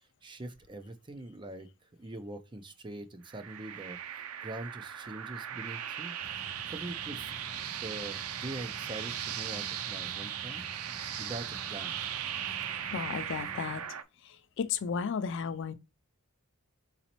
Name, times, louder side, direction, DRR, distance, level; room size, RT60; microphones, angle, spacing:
voice 1, 0.2-1.7 2.0-6.2 6.7-7.4 7.8-10.6 11.2-12.0, right 2 dB, 20° right, 0.5 m, -43 dB
sound 1, 3.3-14.0, right 10 dB, 85° right, 0.5 m, -38 dB
sound 2, 6.2-13.8, equal, 15° left, 1.7 m, -50 dB
voice 2, 12.9-13.9 14.2-15.7, left 6 dB, 60° left, 0.4 m, -34 dB
4.1 x 4.0 x 2.9 m
head